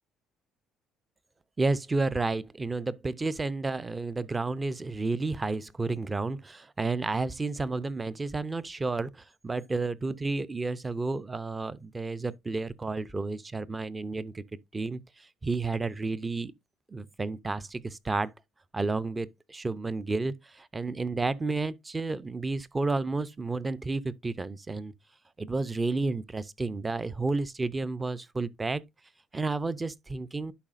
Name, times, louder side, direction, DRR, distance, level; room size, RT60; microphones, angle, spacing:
voice 1, 1.6-14.4 14.7-16.5 16.9-18.3 18.7-24.9 25.4-28.8 29.3-30.5, right 3 dB, 15° right, 0.5 m, -31 dB
11.0 x 4.8 x 2.5 m
cardioid pair, 130°, 0 cm